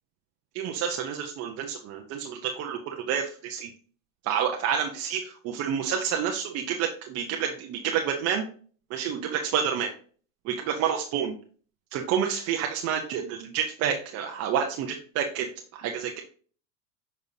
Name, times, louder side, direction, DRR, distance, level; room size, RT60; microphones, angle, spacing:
voice 1, 0.5-3.7 4.2-8.4 8.9-9.9 10.4-11.3 11.9-16.2, right 8 dB, 35° right, 3 dB, 0.7 m, -29 dB
6.6 x 5.3 x 2.7 m, 0.43 s
supercardioid pair, 145°, 40 cm